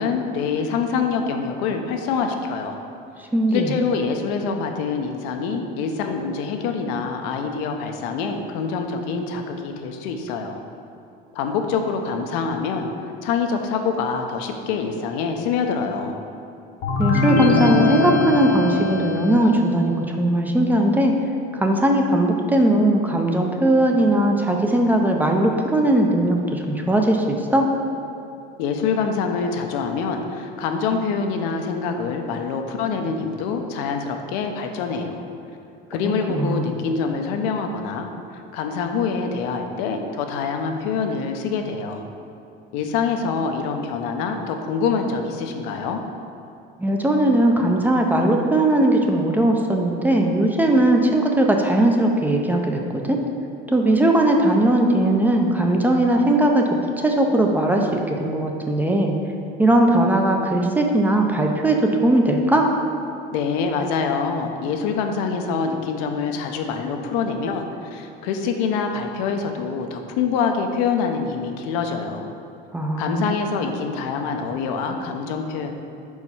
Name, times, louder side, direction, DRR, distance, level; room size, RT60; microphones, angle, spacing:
voice 1, 0.0-2.8 3.5-10.6 11.3-12.9 13.2-16.2 28.6-35.2 35.9-38.1 38.5-42.1 42.7-46.0 63.3-72.3 73.0-75.7, left 5 dB, 85° left, 5 dB, 0.7 m, -25 dB
voice 2, 3.2-3.7 17.0-21.1 21.5-27.7 36.3-36.7 46.8-53.2 53.7-56.7 57.0-59.1 59.6-62.7 72.7-73.3, right 1 dB, 10° right, 2 dB, 0.4 m, -19 dB
sound 1, 16.8-19.6, left 4 dB, 50° left, 0.8 m, -21 dB
4.7 x 4.3 x 5.5 m, 2.7 s
cardioid pair, 140°, 21 cm